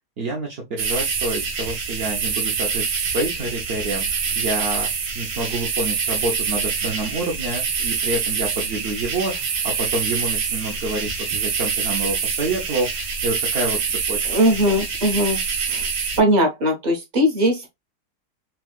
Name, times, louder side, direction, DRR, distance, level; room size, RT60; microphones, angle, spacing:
voice 1, 0.2-14.8, right 2 dB, 55° right, 0.6 m, -28 dB
sound 1, 0.8-16.2, right 6 dB, 80° right, 1.5 m, -25 dB
voice 2, 14.3-15.4 15.7-15.8 16.2-17.7, equal, 30° right, 0.9 m, -19 dB
4.2 x 2.3 x 2.3 m
omnidirectional pair, 1.8 m